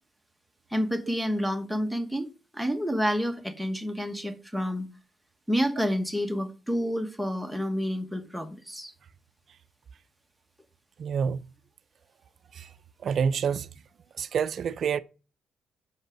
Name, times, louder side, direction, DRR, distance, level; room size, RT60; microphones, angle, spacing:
voice 1, 0.7-4.8 5.5-8.9, equal, ahead, 1.0 m, -29 dB
voice 2, 11.0-11.4 12.5-12.7 13.0-13.7 14.2-15.0, right 7 dB, 60° right, 0.4 m, -27 dB
6.1 x 5.3 x 5.0 m
cardioid pair, 90°, 0 cm